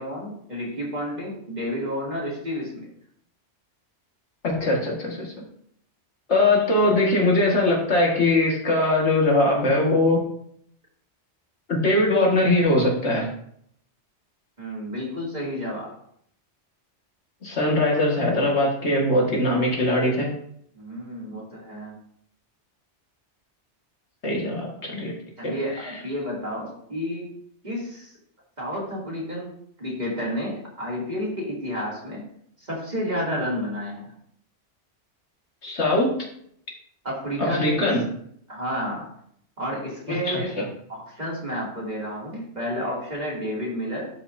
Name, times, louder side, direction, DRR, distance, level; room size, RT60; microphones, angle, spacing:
voice 1, 0.0-2.9 14.6-16.0 20.7-21.9 25.4-27.3 27.6-28.1 28.6-29.5 29.8-32.2 32.6-34.1 37.0-37.9 38.5-39.1 39.6-40.5 40.9-44.1, equal, 40° right, -5 dB, 2.9 m, -30 dB
voice 2, 4.4-5.3 6.3-10.2 11.7-13.3 17.4-20.3 24.2-25.1 25.4-25.5 25.8-25.9 35.6-36.2 37.4-38.0 40.3-40.4, left 2 dB, 75° left, -2 dB, 2.1 m, -21 dB
12.0 x 5.3 x 2.7 m, 0.67 s
omnidirectional pair, 1.2 m